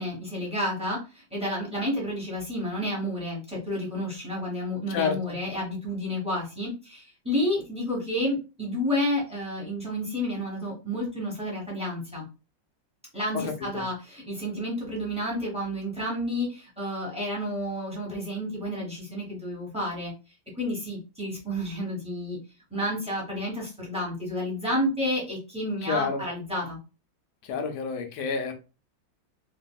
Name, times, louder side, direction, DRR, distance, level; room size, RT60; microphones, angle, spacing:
voice 1, 0.0-12.2 13.1-20.1 20.6-22.4 22.7-26.8, left 1 dB, 5° right, -4 dB, 0.9 m, -30 dB
voice 2, 4.9-5.3 13.3-13.4 13.7-13.8 25.8-26.2 27.5-28.5, left 5 dB, 75° left, 5 dB, 1.1 m, -29 dB
3.3 x 2.5 x 2.2 m, 0.31 s
omnidirectional pair, 2.1 m